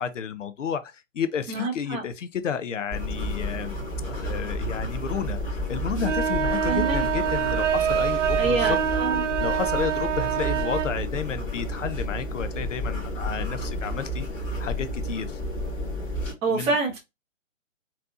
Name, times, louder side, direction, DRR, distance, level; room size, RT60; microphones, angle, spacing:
voice 1, 0.0-3.7 4.0-8.8 9.4-15.4 16.5-16.8, left 7 dB, 65° left, 0.8 m, -31 dB
voice 2, 1.5-2.0 6.6-7.1 8.4-9.3 16.4-17.0, right 3 dB, 15° right, 1.4 m, -27 dB
sound 1, 2.9-16.3, equal, 20° left, 2.9 m, -31 dB
sound 2, 6.0-10.9, right 8 dB, 65° right, 0.6 m, -26 dB
4.3 x 4.1 x 2.4 m
hypercardioid pair, 145°, 39 cm